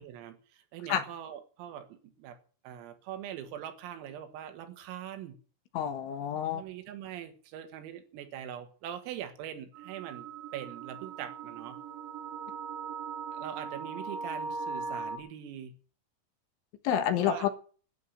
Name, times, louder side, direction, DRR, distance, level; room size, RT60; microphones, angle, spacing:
voice 1, 0.0-2.4 2.6-5.4 6.5-11.8 13.3-15.7 17.2-17.5, right 10 dB, 85° right, 4.3 m, -42 dB
voice 2, 5.7-6.6 16.9-17.5, left 9 dB, 70° left, 3.6 m, -28 dB
sound 1, 9.7-15.2, right 4 dB, 60° right, 5.0 m, -39 dB
12.0 x 9.3 x 9.8 m
omnidirectional pair, 6.0 m